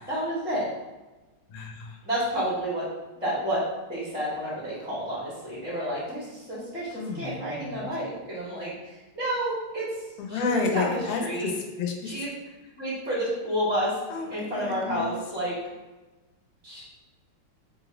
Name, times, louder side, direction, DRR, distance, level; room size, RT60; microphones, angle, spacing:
voice 1, 0.1-0.7 2.0-2.9 3.1-3.6 3.9-9.9 10.3-11.5 12.0-12.3 12.8-13.9 14.3-15.5 16.6-16.8, equal, 5° right, -9 dB, 1.1 m, -30 dB
voice 2, 1.5-2.0 6.9-7.9 10.2-12.2 14.1-15.2, left 4 dB, 85° left, 3 dB, 1.5 m, -31 dB
3.5 x 3.0 x 3.8 m, 1.2 s
omnidirectional pair, 2.3 m